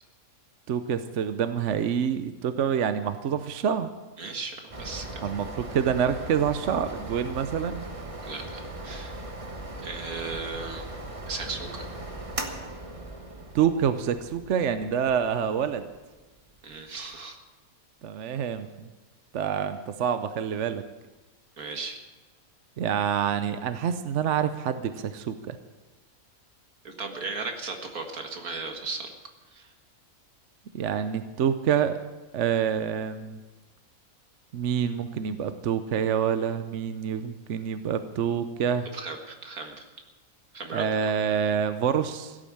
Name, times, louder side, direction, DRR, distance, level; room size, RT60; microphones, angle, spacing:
voice 1, 0.7-3.9 5.2-5.5 5.7-7.8 13.5-15.9 18.0-18.9 19.3-20.8 22.8-25.6 30.7-32.0 32.3-33.4 34.5-38.9 40.7-42.4, right 8 dB, 60° right, 10 dB, 1.0 m, -27 dB
voice 2, 4.2-5.2 8.3-9.2 9.8-10.9 11.3-11.9 16.6-17.4 21.6-22.0 26.8-29.1 29.5-29.7 38.9-39.9 40.5-41.1, right 4 dB, 80° right, 4 dB, 2.2 m, -36 dB
sound 1, 4.7-17.1, right 2 dB, 25° right, 1.3 m, -39 dB
16.0 x 8.9 x 8.6 m, 1.2 s
omnidirectional pair, 1.5 m